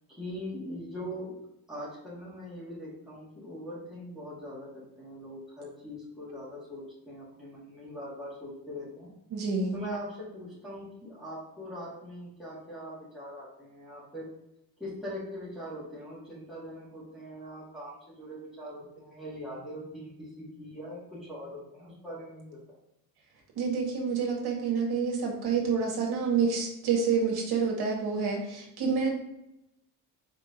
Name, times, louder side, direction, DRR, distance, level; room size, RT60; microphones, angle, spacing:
voice 1, 0.0-1.4 1.7-9.1 9.7-14.3 14.8-22.6, equal, ahead, -9 dB, 2.2 m, -41 dB
voice 2, 9.3-9.8 23.6-29.1, right 5 dB, 80° right, 0 dB, 2.0 m, -28 dB
5.1 x 3.9 x 5.1 m, 0.88 s
cardioid pair, 165°, 37 cm